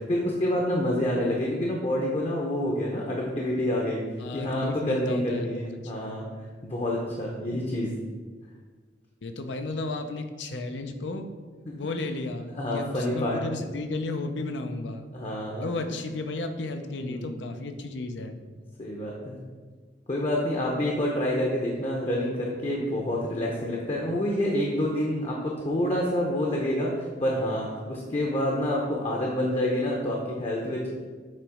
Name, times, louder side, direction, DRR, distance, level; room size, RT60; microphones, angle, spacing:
voice 1, 0.0-4.0 4.3-6.3 6.6-7.9 11.7-11.8 12.5-13.4 15.1-15.6 16.9-17.3 18.8-19.4 20.1-30.9, left 1 dB, 35° left, -2 dB, 0.8 m, -28 dB
voice 2, 4.2-6.2 9.2-11.3 11.8-15.1 15.6-18.4, left 2 dB, 80° left, 7 dB, 0.6 m, -33 dB
7.5 x 3.0 x 4.9 m, 1.5 s
head